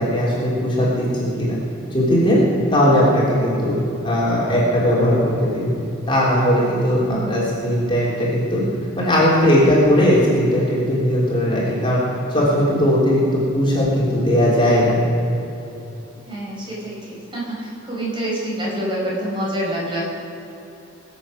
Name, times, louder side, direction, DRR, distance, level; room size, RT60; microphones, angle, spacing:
voice 1, 0.0-1.6 1.9-2.4 2.7-3.8 4.0-5.6 6.1-8.6 9.0-12.0 12.3-15.0, equal, 25° left, -6 dB, 3.5 m, -18 dB
voice 2, 7.0-7.4 16.2-20.0, right 1 dB, 25° right, -5 dB, 4.4 m, -27 dB
22.0 x 8.2 x 6.4 m, 3.0 s
head